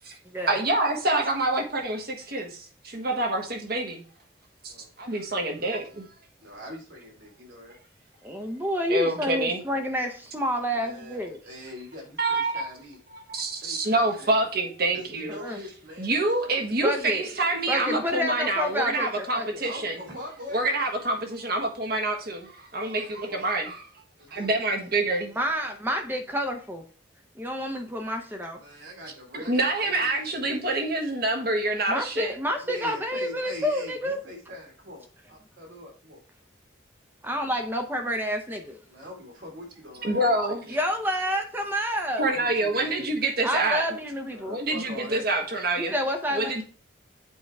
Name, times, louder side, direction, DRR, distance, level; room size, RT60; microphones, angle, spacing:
voice 1, 0.5-4.0 4.6-4.7 5.0-6.1 8.9-9.6 12.2-12.6 13.3-15.4 16.0-20.0 20.5-23.8 24.3-25.3 29.3-32.3 40.0-40.6 42.2-43.9 44.5-45.9 46.3-46.6, right 2 dB, 50° right, 3 dB, 1.4 m, -26 dB
voice 2, 6.4-7.8 10.7-13.0 13.6-14.5 14.9-16.8 19.6-20.8 22.9-23.4 24.2-24.6 28.5-31.0 32.6-36.2 38.9-40.8 42.3-43.1 44.3-45.2, left 1 dB, 65° right, -1 dB, 3.2 m, -43 dB
voice 3, 8.2-11.4 15.4-15.6 16.8-17.3 17.7-19.6 25.4-26.8 27.4-28.6 31.9-34.2 37.2-38.8 40.7-42.3 43.4-44.6 45.9-46.5, equal, 10° right, 4 dB, 0.7 m, -29 dB
8.0 x 4.5 x 3.4 m, 0.39 s
head